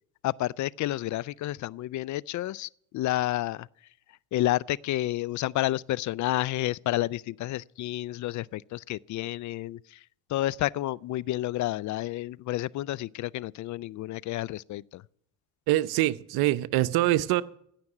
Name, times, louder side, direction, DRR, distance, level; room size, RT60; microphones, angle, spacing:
voice 1, 0.2-3.7 4.3-10.0 10.3-15.0, left 15 dB, 50° left, 0.4 m, -30 dB
voice 2, 15.7-17.4, right 15 dB, 65° right, 0.8 m, -24 dB
16.5 x 6.0 x 10.0 m
hypercardioid pair, 55°, 39 cm